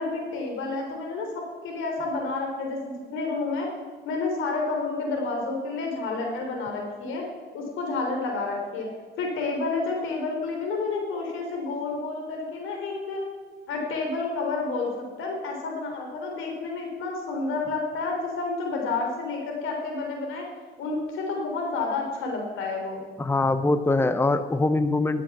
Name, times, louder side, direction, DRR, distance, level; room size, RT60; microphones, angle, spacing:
voice 1, 0.0-3.7 4.0-7.2 7.5-8.9 9.2-13.2 13.7-20.5 20.8-23.0, left 3 dB, 85° left, 1 dB, 3.5 m, -30 dB
voice 2, 23.2-25.2, left 2 dB, 10° left, 11 dB, 0.7 m, -23 dB
12.0 x 7.6 x 7.3 m, 1.5 s
cardioid pair, 90°, 20 cm